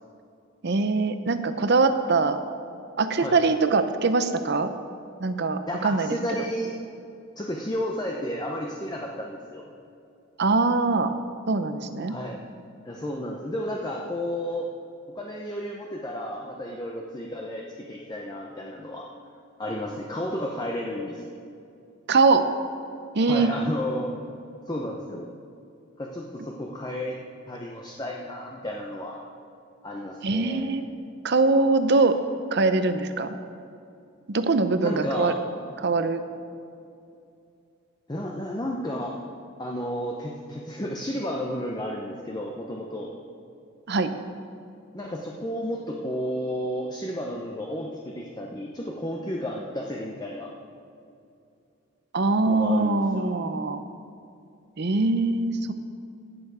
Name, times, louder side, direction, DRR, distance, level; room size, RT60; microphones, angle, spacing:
voice 1, 0.6-2.4 3.0-4.7 5.2-6.2 10.4-11.1 11.5-12.2 22.1-22.5 23.1-23.5 30.2-30.9 31.2-32.2 32.5-33.3 34.3-35.3 35.8-36.2 43.9-44.1 52.1-53.8 54.8-55.7, right 3 dB, 50° right, 10 dB, 0.7 m, -22 dB
voice 2, 5.7-6.7 7.4-9.6 12.1-12.4 12.8-14.7 15.2-19.1 19.6-21.2 23.3-24.2 24.7-25.3 26.0-27.2 27.5-29.2 29.8-30.7 34.8-35.4 35.7-35.8 38.1-39.2 39.6-43.1 44.9-50.5 52.5-53.2, equal, 20° left, -1 dB, 0.7 m, -32 dB
16.0 x 6.9 x 4.9 m, 2.5 s
head